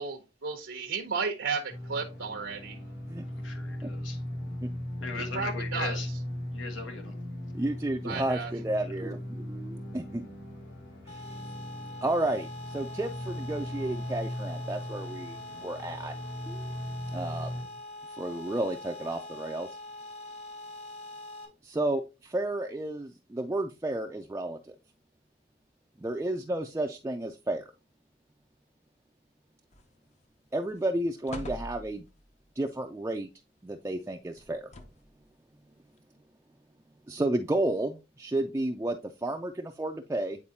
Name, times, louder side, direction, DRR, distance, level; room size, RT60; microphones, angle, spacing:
voice 1, 0.0-2.8 5.1-6.0 8.0-8.5, right 5 dB, 80° right, 0.8 m, -34 dB
sound 1, 1.7-17.6, left 1 dB, 75° left, 3.1 m, -38 dB
voice 2, 3.4-4.2 5.0-6.1 6.5-7.1 8.8-8.9, left 4 dB, 90° left, 1.2 m, -39 dB
voice 3, 7.5-10.2 11.1-11.4 12.0-16.1 16.5-16.7 17.1-17.5 18.2-19.7 21.6-24.8 26.0-27.7 30.5-32.1 32.6-33.3 33.6-34.7 37.1-40.4, right 1 dB, 15° right, 0.3 m, -32 dB
sound 2, 11.1-21.5, left 2 dB, 60° left, 2.5 m, -44 dB
sound 3, 29.7-30.2 30.6-30.8 31.3-32.3 34.4-35.2 36.0-36.1, left 1 dB, 35° left, 0.6 m, -43 dB
8.6 x 4.2 x 2.7 m
head